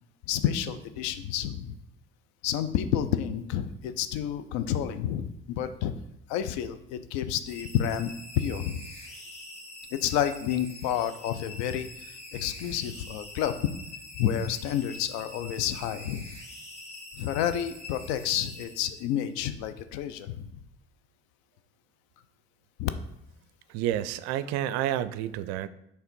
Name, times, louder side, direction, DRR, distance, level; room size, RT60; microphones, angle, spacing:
voice 1, 0.3-1.8 2.4-5.9 6.3-8.9 9.9-13.6 14.2-16.3 17.1-20.5 22.8-22.9, left 10 dB, 60° left, 11 dB, 0.6 m, -30 dB
sound 1, 7.4-19.3, left 2 dB, 20° left, 1.9 m, -45 dB
voice 2, 23.7-25.7, right 12 dB, 55° right, 14 dB, 0.4 m, -29 dB
5.6 x 3.3 x 5.3 m, 0.79 s
figure-of-eight pair, 55°, 32 cm